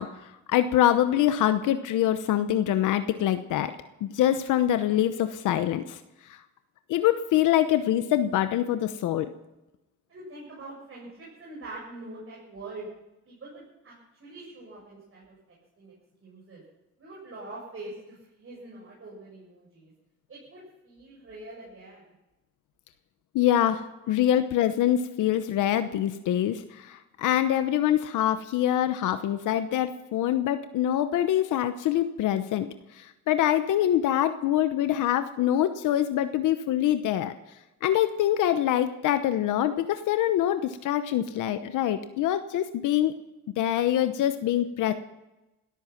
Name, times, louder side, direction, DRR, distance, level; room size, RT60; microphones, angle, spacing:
voice 1, 0.0-3.7 4.0-6.0 6.9-9.3 23.3-32.7 32.9-37.3 37.8-43.1 43.6-44.9, left 11 dB, 85° left, 10 dB, 1.0 m, -25 dB
voice 2, 10.1-12.9 13.3-13.9 14.2-15.3 15.8-16.0 16.2-16.6 17.0-19.9 20.3-22.1, right 2 dB, 45° right, -5 dB, 7.6 m, -44 dB
18.5 x 13.5 x 5.9 m, 0.98 s
cardioid pair, 90°, 30 cm